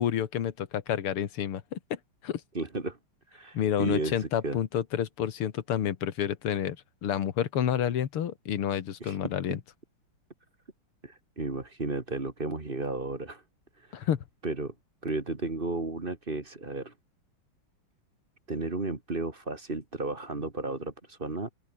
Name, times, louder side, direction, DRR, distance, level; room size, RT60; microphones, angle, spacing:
voice 1, 0.0-2.4 3.5-6.8 7.0-9.6 13.9-14.2, left 9 dB, 90° left, 2.4 m, -29 dB
voice 2, 2.5-3.0 3.3-4.6 9.0-9.2 11.0-13.4 13.9-14.1 14.4-14.7 15.0-16.9 18.5-21.5, right 2 dB, 25° right, 2.3 m, -33 dB
open air
omnidirectional pair, 2.4 m